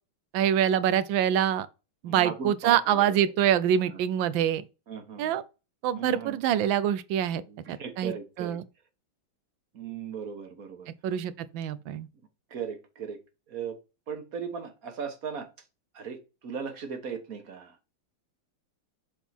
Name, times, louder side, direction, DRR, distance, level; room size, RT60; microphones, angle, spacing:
voice 1, 0.3-1.7 2.0-4.6 5.2-5.4 5.8-7.4 7.7-8.6 11.0-12.1, right 10 dB, 80° right, 1.4 m, -25 dB
voice 2, 2.1-3.2 3.9-4.0 4.9-5.3 6.0-6.4 7.3-8.6 9.7-10.9 12.5-13.2 13.5-13.8 14.1-15.5 15.9-17.8, right 6 dB, 50° right, 1.5 m, -37 dB
7.2 x 3.6 x 4.3 m
omnidirectional pair, 2.2 m